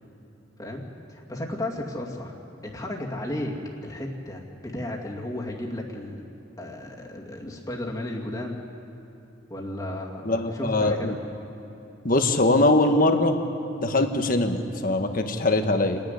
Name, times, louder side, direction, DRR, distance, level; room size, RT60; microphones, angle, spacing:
voice 1, 1.1-2.3 2.6-3.5 3.8-4.4 4.7-6.2 6.6-8.6 9.5-11.2, left 1 dB, 20° left, -2 dB, 2.3 m, -33 dB
voice 2, 10.2-11.1 12.0-13.4 13.8-16.0, left 2 dB, 45° left, 5 dB, 1.4 m, -22 dB
29.0 x 10.5 x 9.9 m, 2.8 s
head